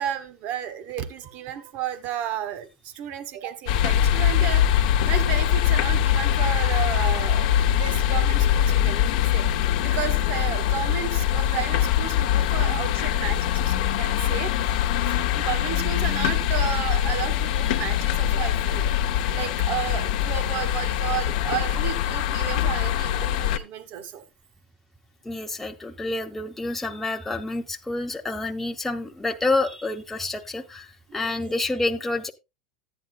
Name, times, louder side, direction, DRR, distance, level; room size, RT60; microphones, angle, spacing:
voice 1, 0.0-14.7 15.0-18.9 19.3-24.2 31.1-31.4, right 10 dB, 50° right, 1.4 m, -33 dB
sound 1, 3.7-23.6, left 10 dB, 70° left, 0.9 m, -23 dB
voice 2, 25.2-32.3, left 2 dB, 5° left, 0.9 m, -28 dB
13.5 x 9.7 x 2.2 m
supercardioid pair, 120°, 4 cm